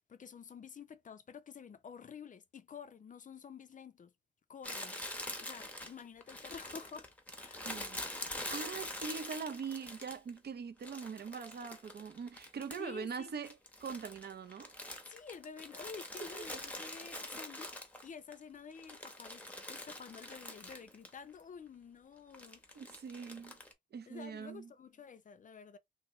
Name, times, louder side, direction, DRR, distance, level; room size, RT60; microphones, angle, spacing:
voice 1, 0.1-4.1 4.5-5.0 5.4-7.1 7.4-7.7 12.8-13.4 15.1-17.7 18.0-22.8 24.1-25.8, left 6 dB, 45° left, 0.4 m, -50 dB
Crumpling crinkling, 4.6-10.4 10.8-13.0 13.3-18.3 18.7-21.1 21.4-21.5 22.3-23.7, left 1 dB, 5° left, 0.7 m, -45 dB
voice 2, 7.6-8.0 8.5-14.7 16.3-16.6 17.2-17.4 22.7-23.6 23.9-24.7, right 6 dB, 60° right, 0.6 m, -43 dB
2.8 x 2.6 x 3.0 m
wide cardioid pair, 115°, 19 cm